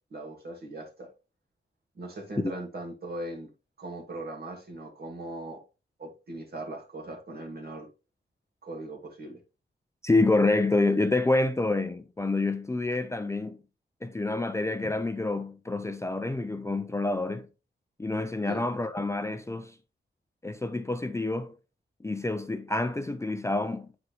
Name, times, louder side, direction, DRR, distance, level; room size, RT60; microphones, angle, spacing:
voice 1, 0.1-1.1 2.0-3.5 3.8-5.6 6.0-7.9 8.6-9.4 18.5-18.6, right 2 dB, 55° right, 2.1 m, -39 dB
voice 2, 10.0-13.6 14.0-17.5 18.0-19.8 20.4-21.6 22.0-23.9, left 2 dB, 15° left, 0.5 m, -27 dB
8.3 x 4.7 x 3.1 m
wide cardioid pair, 110°, 19 cm